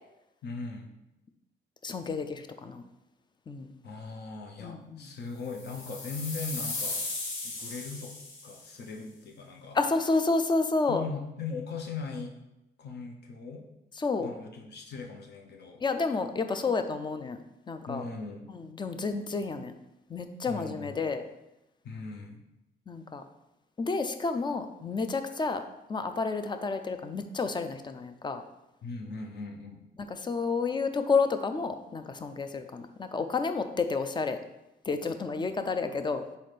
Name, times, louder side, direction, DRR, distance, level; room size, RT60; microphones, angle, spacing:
voice 1, 0.4-1.0 3.8-7.0 7.4-8.1 8.4-9.8 10.9-12.4 12.8-13.7 14.2-16.0 17.9-18.5 20.5-20.9 21.8-22.4 28.8-29.8, left 4 dB, 55° left, 2 dB, 0.7 m, -39 dB
voice 2, 1.8-2.8 3.5-3.7 4.6-5.1 9.7-11.0 14.0-14.3 15.8-17.4 17.7-18.0 18.5-19.7 20.1-21.2 22.9-23.2 23.8-25.6 25.9-28.4 30.1-34.4 34.9-36.2, left 4 dB, 25° left, 8 dB, 0.4 m, -30 dB
sound 1, 5.5-8.7, left 3 dB, 90° left, 1.0 m, -36 dB
4.1 x 3.9 x 3.2 m, 0.92 s
cardioid pair, 90°, 20 cm